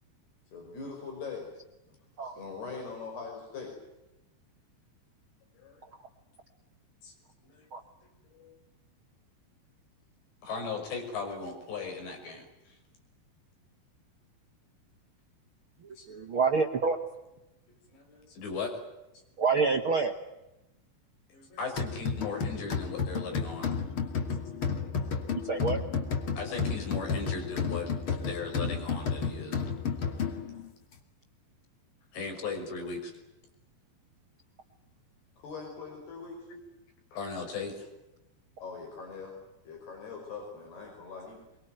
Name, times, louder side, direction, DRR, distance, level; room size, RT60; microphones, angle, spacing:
voice 1, 0.5-1.5 2.2-3.7 35.4-36.4 38.6-39.3 39.7-41.4, left 5 dB, 70° left, 1 dB, 7.3 m, -41 dB
voice 2, 10.4-12.5 16.0-16.3 17.9-18.8 21.3-23.8 25.0-25.2 26.3-29.6 32.1-33.1 36.5-36.6 37.1-37.9, left 4 dB, 85° left, 4 dB, 8.1 m, -38 dB
voice 3, 16.1-17.0 19.4-20.1 25.4-25.8, right 4 dB, 70° right, 5 dB, 1.2 m, -27 dB
sound 1, 21.8-30.7, left 5 dB, 35° left, 2.6 m, -32 dB
23.5 x 23.5 x 9.3 m, 0.93 s
omnidirectional pair, 4.9 m